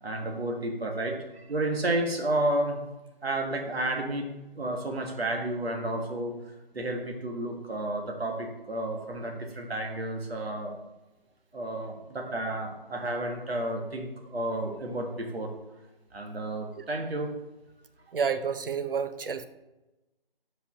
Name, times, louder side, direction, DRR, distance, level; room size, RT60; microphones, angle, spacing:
voice 1, 0.0-2.8 3.2-4.3 4.6-6.3 6.7-10.7 11.5-15.5 16.1-17.3, right 1 dB, 85° right, 1 dB, 1.6 m, -31 dB
voice 2, 18.1-19.4, right 6 dB, 65° right, 10 dB, 0.7 m, -30 dB
5.4 x 4.8 x 5.0 m, 1.0 s
figure-of-eight pair, 175°, 30 cm